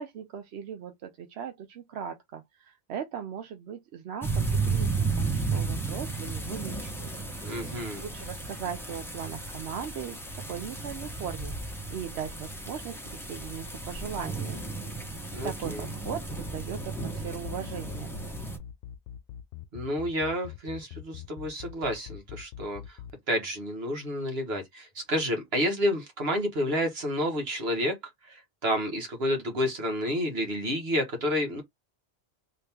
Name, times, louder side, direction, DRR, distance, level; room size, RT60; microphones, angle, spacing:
voice 1, 0.0-7.1 7.9-10.2 10.5-14.6 15.4-18.1, right 8 dB, 90° right, 0.9 m, -38 dB
sound 1, 4.2-18.6, right 4 dB, ahead, 0.8 m, -33 dB
voice 2, 7.4-8.0 15.3-15.8 19.7-23.0 23.3-27.9 28.3-31.6, equal, 70° right, 1.5 m, -30 dB
sound 2, 15.8-23.1, left 10 dB, 70° left, 0.8 m, -42 dB
3.2 x 2.9 x 3.4 m
omnidirectional pair, 1.1 m